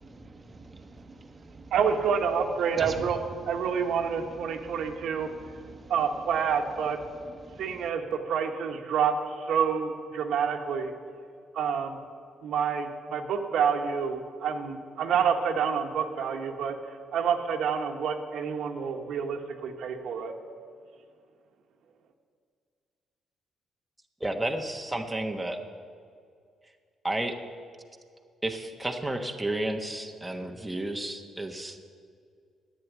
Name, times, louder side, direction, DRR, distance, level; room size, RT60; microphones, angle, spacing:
voice 1, 0.0-1.6 2.7-3.1 4.7-4.8 5.3-5.9 7.4-7.9, right 2 dB, 25° right, 5 dB, 1.2 m, -43 dB
voice 2, 1.7-3.2 3.5-5.3 5.9-7.0 7.6-10.9 11.5-12.0 12.4-16.7 17.1-20.3, right 7 dB, 75° right, 4 dB, 1.2 m, -28 dB
voice 3, 24.2-25.6 27.0-27.4 28.4-31.8, right 1 dB, 10° right, 3 dB, 1.2 m, -31 dB
10.5 x 8.7 x 9.4 m, 2.2 s
cardioid pair, 90°, 0 cm